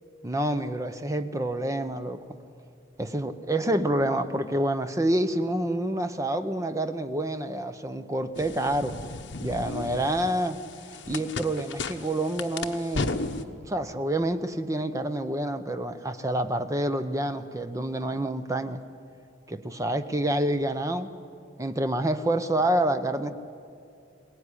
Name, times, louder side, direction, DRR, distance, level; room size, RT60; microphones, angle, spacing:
voice 1, 0.2-2.4 3.0-9.0 9.4-10.6 11.1-13.2 13.6-18.8 19.5-21.1 21.6-23.3, right 1 dB, 15° right, 9 dB, 0.8 m, -28 dB
sound 1, 8.4-13.4, left 3 dB, 70° left, 1.1 m, -35 dB
21.5 x 18.5 x 9.9 m, 2.5 s
head